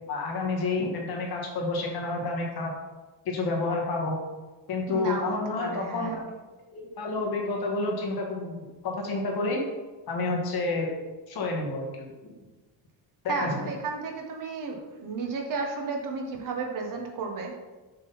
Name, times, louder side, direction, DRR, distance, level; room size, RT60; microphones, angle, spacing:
voice 1, 0.1-2.7 3.2-4.2 4.7-6.3 6.7-9.6 10.1-10.9 11.3-11.9 12.2-12.3 13.2-13.5, left 3 dB, 50° left, 0 dB, 1.5 m, -29 dB
voice 2, 4.9-6.3 13.3-17.5, right 4 dB, 45° right, 2 dB, 1.1 m, -33 dB
6.3 x 3.7 x 5.5 m, 1.2 s
cardioid pair, 175°, 47 cm